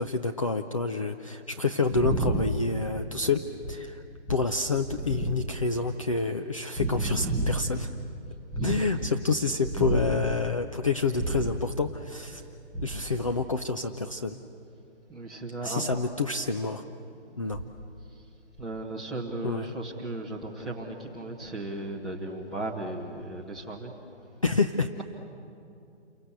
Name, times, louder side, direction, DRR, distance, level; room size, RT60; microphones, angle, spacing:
voice 1, 0.0-4.0 4.3-7.9 8.6-12.4 12.8-14.4 15.6-16.8 17.4-17.6 19.4-19.7 24.4-24.9, left 4 dB, 30° left, 6 dB, 0.6 m, -28 dB
voice 2, 1.9-2.6 2.9-3.0 3.6-3.7 4.3-4.4 4.8-5.5 6.8-7.7 8.5-10.2 11.1-11.6 12.7-13.3 15.1-15.8 17.4-17.7 18.6-23.9 24.9-25.0, right 2 dB, ahead, -5 dB, 1.0 m, -33 dB
29.0 x 23.5 x 8.2 m, 2.7 s
hypercardioid pair, 165°, 34 cm